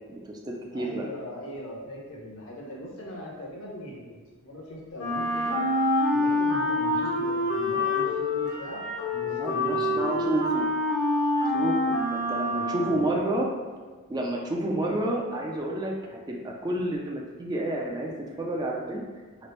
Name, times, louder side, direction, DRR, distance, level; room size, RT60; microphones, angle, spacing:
voice 1, 0.1-1.1 9.3-10.7 11.5-13.5 14.1-19.0, right 1 dB, 20° right, -1 dB, 0.3 m, -30 dB
voice 2, 0.7-5.6 6.1-8.8 9.1-10.3 12.6-13.1, equal, 65° left, -3 dB, 0.8 m, -40 dB
Wind instrument woodwind instrument, 5.0-13.1, left 1 dB, 85° left, 1.2 m, -26 dB
3.0 x 2.5 x 3.1 m, 1.4 s
head